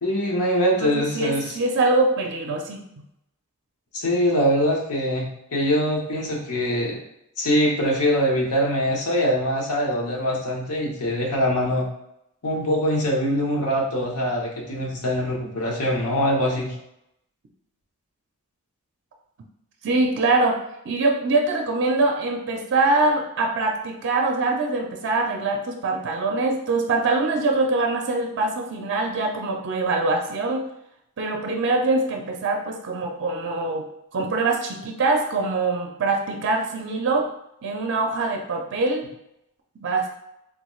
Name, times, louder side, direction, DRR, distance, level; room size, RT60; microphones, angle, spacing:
voice 1, 0.0-1.5 3.9-7.0 7.4-11.9 12.4-16.7, equal, 85° left, -1 dB, 0.8 m, -23 dB
voice 2, 0.8-2.8 19.8-30.6 31.2-37.3 37.6-39.1 39.8-40.1, right 3 dB, 50° right, 2 dB, 0.4 m, -23 dB
3.5 x 2.3 x 3.0 m, 0.82 s
head